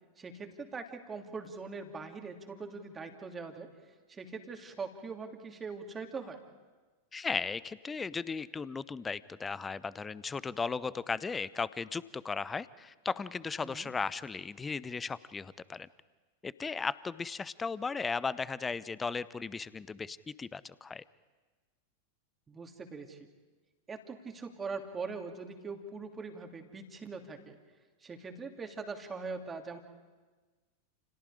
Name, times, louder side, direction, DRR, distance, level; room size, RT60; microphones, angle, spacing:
voice 1, 0.2-3.7 4.1-6.4 13.6-13.9 22.5-23.3 23.9-27.6 28.0-29.8, right 4 dB, 15° right, 4 dB, 3.0 m, -42 dB
voice 2, 7.1-15.9 16.4-21.0, left 5 dB, 15° left, 19 dB, 0.8 m, -36 dB
30.0 x 29.5 x 5.0 m, 1.3 s
figure-of-eight pair, 90°, 0 cm